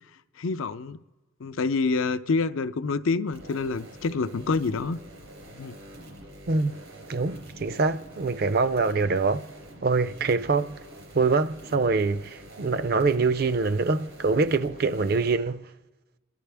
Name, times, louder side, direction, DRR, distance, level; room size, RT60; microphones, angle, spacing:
voice 1, 0.4-1.0 1.4-5.0 5.5-5.8, left 4 dB, 85° left, 0.5 m, -27 dB
sound 1, 3.3-15.4, equal, 85° right, 3.5 m, -46 dB
voice 2, 6.5-6.8 7.1-9.4 9.8-10.8 11.1-15.7, right 4 dB, 50° right, 0.4 m, -24 dB
28.0 x 11.5 x 3.4 m
head